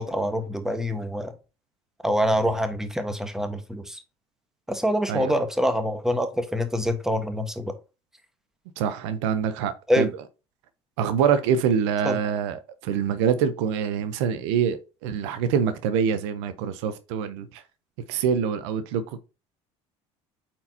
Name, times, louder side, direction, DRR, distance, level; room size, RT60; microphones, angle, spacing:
voice 1, 0.0-1.3 2.0-4.0 4.7-7.7 9.9-10.1 12.0-12.2, equal, 5° right, 1.2 m, -25 dB
voice 2, 8.8-10.1 11.0-17.6 18.1-19.2, right 7 dB, 80° right, 0.7 m, -25 dB
8.5 x 4.4 x 2.8 m
hypercardioid pair, 75°, 15 cm